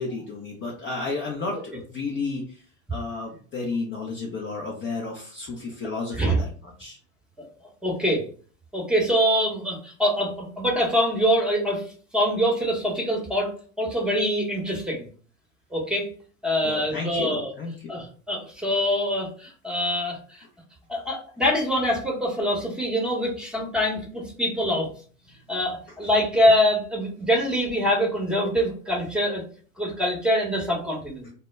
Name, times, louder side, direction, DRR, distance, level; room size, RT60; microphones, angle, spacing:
voice 1, 0.0-2.6 2.9-7.0 16.6-17.9 31.2-31.3, left 3 dB, 30° left, -2 dB, 0.6 m, -32 dB
voice 2, 7.8-8.2 8.7-11.8 12.1-13.5 13.8-15.1 15.7-16.1 16.4-17.5 17.9-20.4 20.9-24.9 25.5-29.4 29.8-31.3, equal, ahead, -1 dB, 0.9 m, -24 dB
2.1 x 2.1 x 3.3 m, 0.42 s
hypercardioid pair, 85°, 40 cm